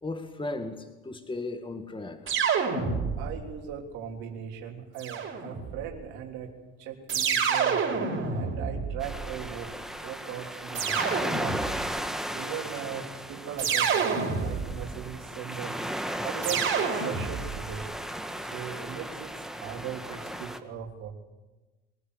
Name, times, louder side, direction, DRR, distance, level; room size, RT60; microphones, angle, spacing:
voice 1, 0.0-2.2, left 2 dB, 15° left, 7 dB, 2.1 m, -36 dB
sound 1, 2.3-3.5 5.0-5.8 7.1-9.4 10.7-11.9 13.6-14.9 16.4-17.6, right 6 dB, 40° right, 5.9 m, -28 dB
voice 2, 3.2-6.5 6.8-9.7 10.0-11.6 12.3-15.8 16.2-17.9 18.4-21.1, right 8 dB, 65° right, 2 dB, 3.4 m, -39 dB
sound 2, 9.0-20.6, right 1 dB, ahead, 1.8 m, -36 dB
23.5 x 15.0 x 8.2 m, 1.2 s
hypercardioid pair, 70°, 31 cm